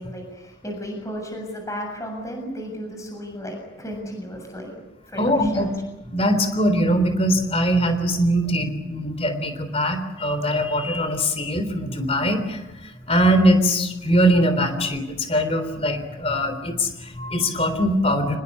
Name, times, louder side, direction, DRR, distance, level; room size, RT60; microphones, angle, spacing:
voice 1, 0.0-5.7, equal, 15° left, 2 dB, 7.2 m, -34 dB
voice 2, 5.2-5.7 6.1-18.4, equal, 30° left, 9 dB, 3.6 m, -22 dB
25.0 x 21.0 x 8.4 m, 0.99 s
head